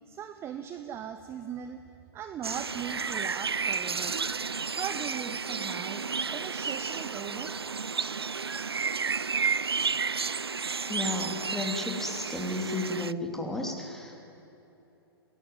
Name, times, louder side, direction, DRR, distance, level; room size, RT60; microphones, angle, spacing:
voice 1, 0.1-1.8 2.1-4.2 4.6-7.6, right 8 dB, 20° right, 9 dB, 0.9 m, -39 dB
sound 1, 2.4-13.1, right 5 dB, 80° right, 0.5 m, -32 dB
voice 2, 10.9-14.2, left 2 dB, 5° left, 1 dB, 3.0 m, -33 dB
29.0 x 18.0 x 9.4 m, 2.9 s
figure-of-eight pair, 110°, 13 cm